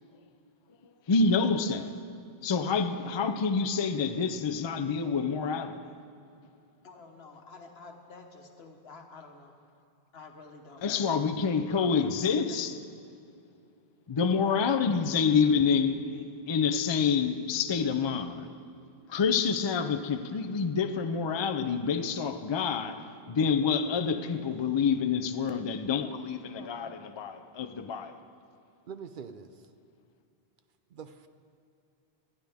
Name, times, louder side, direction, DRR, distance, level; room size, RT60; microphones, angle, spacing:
voice 1, 1.1-1.9 2.4-5.9 10.8-12.8 14.1-18.5 19.1-28.2, left 5 dB, 40° left, 0.4 m, -27 dB
voice 2, 6.8-9.5 10.1-11.0 12.0-12.1 12.5-12.7 26.0-26.1 26.6-27.0, left 3 dB, 80° left, 1.4 m, -49 dB
voice 3, 28.9-29.7 30.9-31.3, right 6 dB, 60° right, 0.7 m, -44 dB
19.5 x 11.5 x 3.5 m
omnidirectional pair, 1.0 m